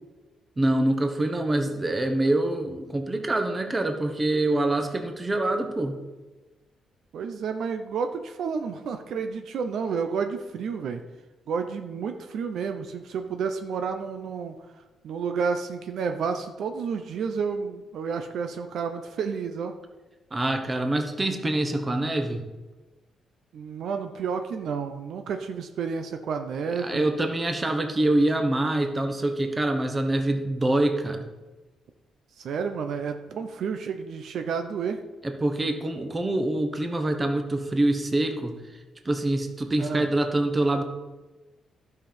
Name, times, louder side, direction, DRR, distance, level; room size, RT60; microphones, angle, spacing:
voice 1, 0.6-6.0 20.3-22.4 26.8-31.3 35.2-38.6 39.0-40.8, right 1 dB, 20° right, 6 dB, 1.1 m, -25 dB
voice 2, 7.1-11.0 11.5-14.5 15.0-19.7 23.5-27.1 32.4-35.0 39.8-40.1, right 6 dB, 70° right, 7 dB, 0.7 m, -30 dB
12.0 x 5.9 x 5.2 m, 1.2 s
cardioid pair, 115°, 0 cm